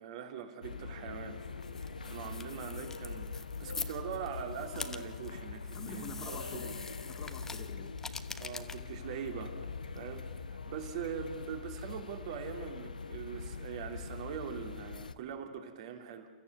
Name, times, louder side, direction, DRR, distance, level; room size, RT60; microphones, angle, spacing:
voice 1, 0.0-1.4 1.8-6.7 8.4-9.6 9.9-16.3, right 8 dB, 50° right, 5 dB, 2.9 m, -42 dB
sound 1, 0.6-15.1, left 4 dB, 80° left, 0.9 m, -43 dB
sound 2, 1.3-10.5, left 4 dB, 10° left, 1.1 m, -46 dB
voice 2, 2.1-2.4 5.7-7.9, left 7 dB, 30° left, 5 dB, 2.4 m, -48 dB
30.0 x 14.5 x 8.0 m, 1.5 s
figure-of-eight pair, 110°, 4 cm